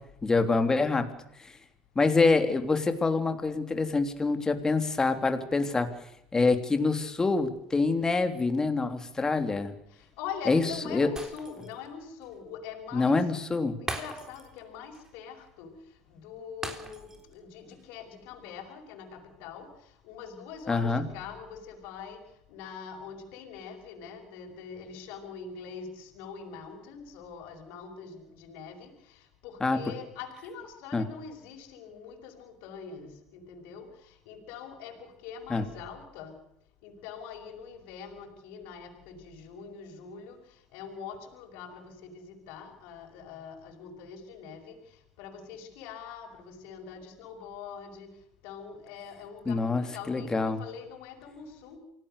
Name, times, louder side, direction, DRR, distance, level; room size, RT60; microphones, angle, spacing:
voice 1, 0.2-1.0 1.4-1.5 1.9-5.9 6.3-9.7 10.5-11.1 12.9-13.8 20.7-21.0 29.6-29.8 30.9-31.0 35.5-35.6 49.5-50.6, left 3 dB, 20° left, 8 dB, 3.2 m, -26 dB
voice 2, 10.2-13.2 13.8-15.7 16.1-19.7 20.0-22.2 22.5-28.9 29.4-33.9 34.3-36.3 36.8-40.4 40.7-44.8 45.2-48.1 48.4-51.8, left 6 dB, 80° left, 2 dB, 5.9 m, -43 dB
Shatter, 11.2-11.9 12.2-12.3 13.9-14.6 14.9-15.1 16.6-17.3 17.7-17.8, right 2 dB, 15° right, 4.1 m, -39 dB
27.5 x 18.0 x 6.7 m, 0.76 s
supercardioid pair, 110°, 3 cm